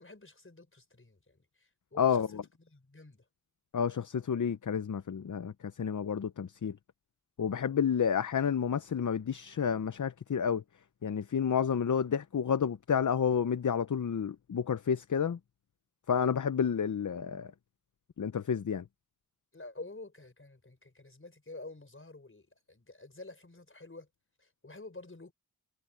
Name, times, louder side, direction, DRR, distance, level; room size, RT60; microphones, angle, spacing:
voice 1, 0.0-3.3 19.5-24.1 24.4-25.3, left 2 dB, 40° left, 5.4 m, -49 dB
voice 2, 2.0-2.3 3.7-5.5 5.8-6.8 7.4-10.6 11.0-15.4 16.1-17.5 18.2-18.8, left 7 dB, 60° left, 0.8 m, -30 dB
cardioid pair, 45°, 33 cm